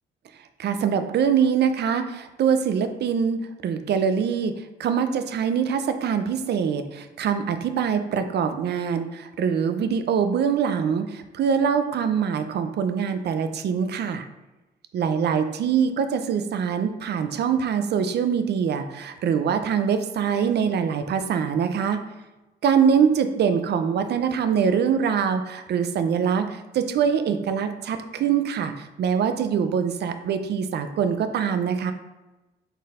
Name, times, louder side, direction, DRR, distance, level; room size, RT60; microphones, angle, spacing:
voice 1, 0.6-14.3 14.9-22.0 22.6-31.9, right 7 dB, 55° right, 9 dB, 0.5 m, -24 dB
4.1 x 3.8 x 2.5 m, 1.0 s
cardioid pair, 90°, 20 cm